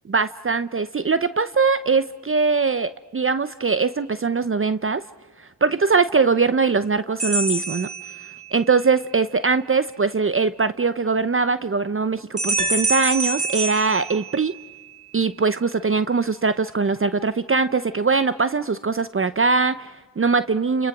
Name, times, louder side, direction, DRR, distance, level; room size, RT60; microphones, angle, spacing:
voice 1, 0.1-5.0 5.4-7.9 8.5-14.5 15.1-20.9, right 4 dB, 30° right, 14 dB, 0.8 m, -21 dB
sound 1, 7.2-8.7 12.4-14.9, right 2 dB, 15° right, 4.7 m, -26 dB
Piano, 12.5-13.8 14.1-14.2, left 1 dB, 50° right, 2.9 m, -34 dB
29.0 x 28.0 x 6.1 m, 1.3 s
supercardioid pair, 45°, 40 cm